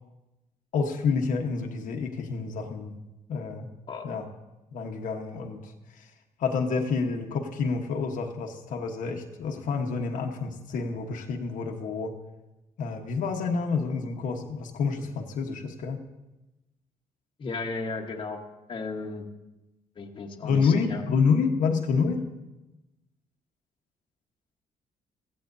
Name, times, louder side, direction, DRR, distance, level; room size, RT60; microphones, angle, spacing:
voice 1, 0.7-3.0 3.3-3.7 4.0-4.3 4.7-6.1 6.4-12.1 12.8-16.0 20.4-22.2, left 5 dB, 75° left, 2 dB, 1.2 m, -28 dB
voice 2, 17.4-18.4 18.7-19.2 20.0-21.0, left 3 dB, 35° left, 2 dB, 1.3 m, -34 dB
15.5 x 15.0 x 2.7 m, 1.0 s
cardioid pair, 120°, 14 cm